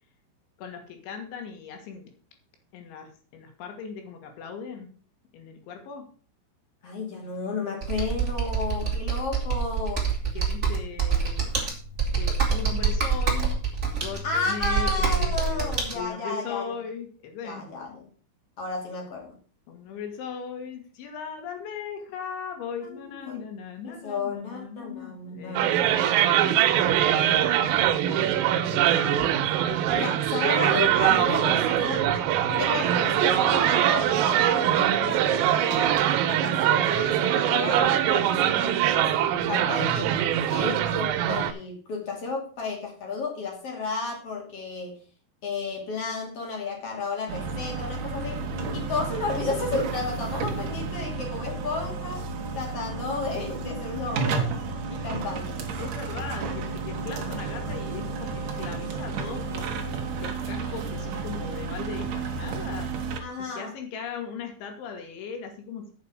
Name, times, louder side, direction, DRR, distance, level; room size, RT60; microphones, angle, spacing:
voice 1, 0.6-2.1 2.7-4.9 5.3-6.1 10.3-11.5 12.1-13.6 13.9-17.6 19.7-25.7 26.2-26.6 55.3-59.8 60.2-62.9 63.4-65.9, left 6 dB, 70° left, 5 dB, 3.9 m, -38 dB
voice 2, 6.8-10.1 14.2-16.6 17.4-18.1 18.6-19.4 22.8-23.4 23.8-26.0 26.4-26.5 28.0-28.2 28.7-29.5 30.0-32.1 32.5-40.2 40.5-45.0 45.4-48.4 48.7-52.2 52.5-54.4 54.9-55.6 63.2-63.7, left 4 dB, 40° left, 1 dB, 2.8 m, -33 dB
Computer keyboard, 7.8-15.9, right 5 dB, 25° right, 1.5 m, -26 dB
sound 1, 25.6-41.5, right 11 dB, 90° right, 3.5 m, -23 dB
sound 2, 47.3-63.2, right 4 dB, 65° right, 2.1 m, -32 dB
8.8 x 6.6 x 6.4 m, 0.41 s
omnidirectional pair, 5.7 m